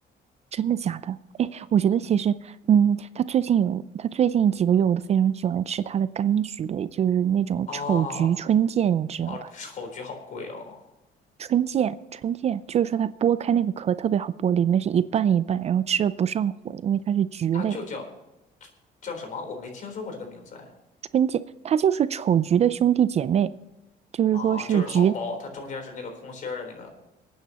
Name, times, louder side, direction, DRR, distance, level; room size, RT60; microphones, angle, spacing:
voice 1, 0.5-9.3 11.4-17.8 21.1-23.5 24.1-25.1, right 9 dB, 40° right, 15 dB, 0.4 m, -23 dB
voice 2, 7.7-8.3 9.2-10.8 17.5-18.1 18.6-18.7 19.0-20.7 24.3-26.9, left 4 dB, 50° left, 3 dB, 3.9 m, -35 dB
26.5 x 9.2 x 3.0 m, 0.96 s
cardioid pair, 110°, 17 cm